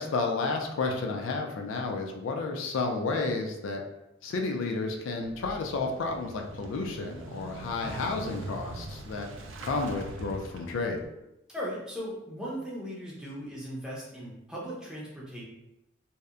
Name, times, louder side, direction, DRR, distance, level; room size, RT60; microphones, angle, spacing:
voice 1, 0.0-3.8 4.2-9.3 9.6-11.0, left 3 dB, 80° left, 2 dB, 0.3 m, -31 dB
Motorcycle / Engine starting, 5.2-11.1, right 2 dB, 75° right, 0.3 m, -42 dB
voice 2, 11.5-15.4, equal, 5° right, -6 dB, 0.5 m, -38 dB
2.7 x 2.1 x 2.3 m, 0.91 s
head